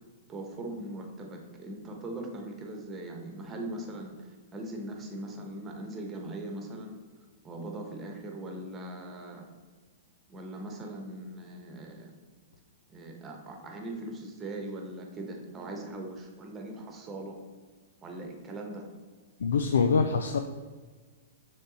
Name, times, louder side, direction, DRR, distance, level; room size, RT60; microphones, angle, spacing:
voice 1, 0.3-7.0 7.4-9.4 10.3-12.1 12.9-17.4 18.0-18.9, right 1 dB, 20° right, 2 dB, 1.1 m, -40 dB
voice 2, 19.4-20.4, left 5 dB, 80° left, 6 dB, 0.4 m, -24 dB
6.6 x 3.5 x 4.1 m, 1.4 s
hypercardioid pair, 120°, 0 cm